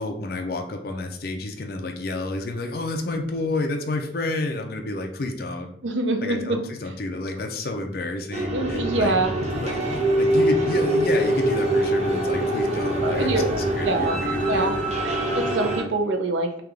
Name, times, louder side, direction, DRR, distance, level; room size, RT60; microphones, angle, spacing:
voice 1, 0.0-5.7 6.2-14.7, left 2 dB, 55° left, 3 dB, 0.5 m, -30 dB
voice 2, 5.8-6.6 8.5-9.3 13.0-14.2 14.5-14.7 15.0-16.6, right 2 dB, 85° right, 5 dB, 0.5 m, -25 dB
sound 1, 8.3-15.8, right 1 dB, 35° right, 0.7 m, -24 dB
3.4 x 2.4 x 3.3 m, 0.66 s
head